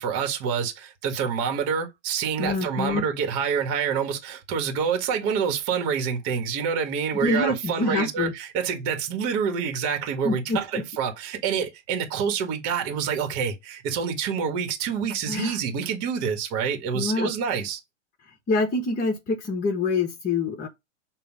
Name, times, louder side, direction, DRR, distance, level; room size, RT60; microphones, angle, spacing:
voice 1, 0.0-17.8, right 7 dB, 40° right, 1.6 m, -27 dB
voice 2, 2.4-3.0 7.1-8.3 10.2-10.8 15.3-15.6 16.9-17.3 18.5-20.7, left 3 dB, 20° left, 1.4 m, -26 dB
7.0 x 2.8 x 5.1 m
figure-of-eight pair, 100°, 36 cm